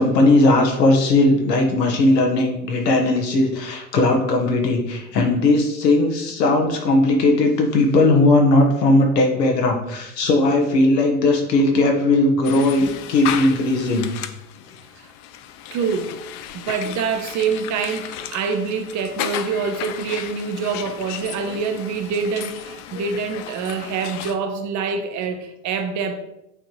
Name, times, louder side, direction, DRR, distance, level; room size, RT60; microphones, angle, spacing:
voice 1, 0.0-14.1, left 2 dB, 75° left, 2 dB, 1.4 m, -18 dB
sound 1, 12.4-24.4, left 10 dB, 50° left, 0.6 m, -34 dB
voice 2, 15.7-16.1 16.5-26.1, right 5 dB, 35° right, 7 dB, 0.8 m, -25 dB
8.8 x 3.6 x 3.1 m, 0.88 s
hypercardioid pair, 80°, 49 cm